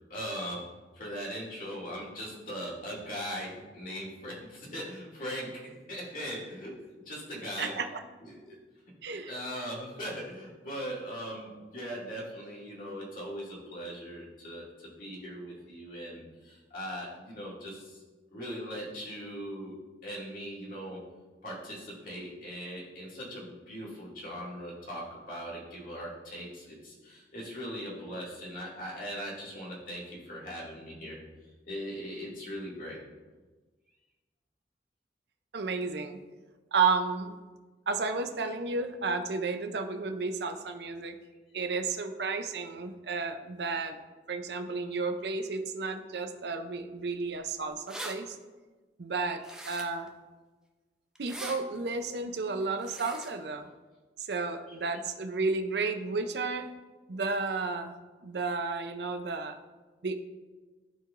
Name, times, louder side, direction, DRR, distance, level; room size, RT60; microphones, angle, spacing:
voice 1, 0.1-0.7 0.9-7.8 8.2-8.5 9.1-18.0 18.3-21.0 21.4-31.2 31.7-33.0, equal, 50° left, -6 dB, 2.3 m, -40 dB
voice 2, 7.6-8.0 9.0-9.3 35.5-36.2 36.7-37.4 37.9-41.2 41.5-44.0 44.3-48.4 49.0-50.1 51.2-53.7 54.2-56.7 57.1-57.9 58.2-59.6 60.0-60.2, right 4 dB, 75° right, 8 dB, 0.6 m, -32 dB
sound 1, 47.4-47.5 47.7-48.1 49.4-50.1 51.2-51.6 52.8-53.3, right 1 dB, 5° right, 0.6 m, -41 dB
13.5 x 4.7 x 2.5 m, 1.3 s
head